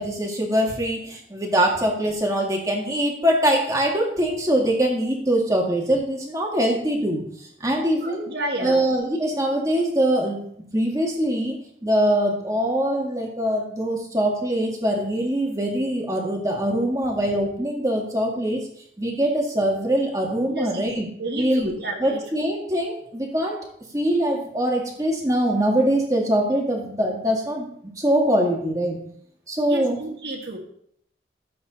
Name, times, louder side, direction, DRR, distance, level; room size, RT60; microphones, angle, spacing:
voice 1, 0.0-8.3 8.6-10.5 10.7-18.7 19.0-21.1 21.3-21.7 22.0-23.7 23.9-27.7 28.0-29.0 29.5-30.0, right 1 dB, 20° right, 0 dB, 2.0 m, -23 dB
voice 2, 8.0-8.8 20.5-20.9 21.2-22.2 29.7-30.6, right 2 dB, 65° right, 0 dB, 1.8 m, -31 dB
12.5 x 7.8 x 4.1 m, 0.67 s
head